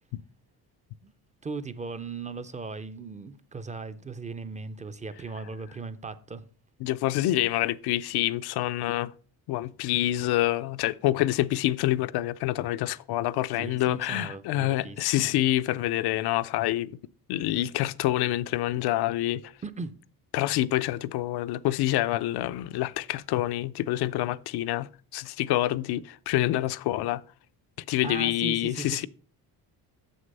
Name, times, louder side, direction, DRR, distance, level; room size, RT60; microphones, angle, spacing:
voice 1, 1.4-6.4 13.6-15.4 19.6-19.9 28.0-29.1, right 4 dB, 20° right, 0.3 m, -38 dB
voice 2, 6.8-9.1 9.5-17.0 17.3-19.5 20.3-27.2 27.9-29.1, left 15 dB, 85° left, 0.5 m, -27 dB
7.4 x 6.5 x 5.3 m
cardioid pair, 160°, 37 cm